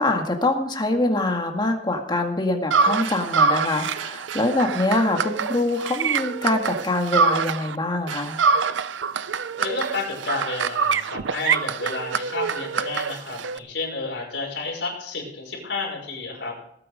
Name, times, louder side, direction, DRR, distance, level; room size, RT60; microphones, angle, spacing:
voice 1, 0.0-8.4, left 2 dB, 25° left, 3 dB, 1.9 m, -24 dB
sound 1, 2.7-7.8 8.1-13.6, right 5 dB, 80° right, 0.6 m, -25 dB
voice 2, 9.6-16.5, left 3 dB, 70° left, -1 dB, 5.6 m, -31 dB
19.5 x 8.9 x 5.1 m, 0.70 s
head